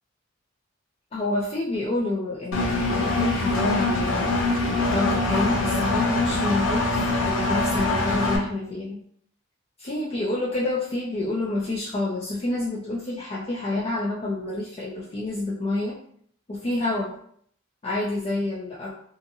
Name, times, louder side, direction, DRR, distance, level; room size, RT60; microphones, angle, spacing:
voice 1, 1.1-4.3 4.9-9.0 9.8-16.0 16.5-17.1 17.8-18.9, left 2 dB, 30° left, -5 dB, 0.4 m, -28 dB
Engine, 2.5-8.4, left 2 dB, 85° left, 0.5 m, -24 dB
2.6 x 2.5 x 2.6 m, 0.63 s
head